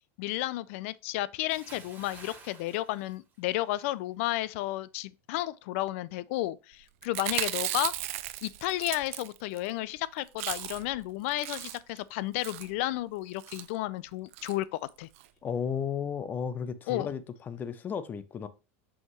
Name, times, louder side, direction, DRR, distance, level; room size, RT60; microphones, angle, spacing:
voice 1, 0.2-7.9 8.4-15.1 16.9-17.1, left 16 dB, 65° left, 0.4 m, -32 dB
Bathtub (filling or washing) / Splash splatter, 1.5-3.9 4.2-4.5, right 4 dB, 25° right, 2.6 m, -51 dB
Chewing mastication, 7.0-9.7 10.0-10.1 10.3-11.0 11.3-12.0 12.4-12.7 13.4-13.7 14.3-14.6 14.9-15.0 15.2-15.3, right 16 dB, 70° right, 0.5 m, -35 dB
voice 2, 15.4-18.5, left 7 dB, 25° left, 0.6 m, -34 dB
5.7 x 5.3 x 3.1 m
supercardioid pair, 145°, 8 cm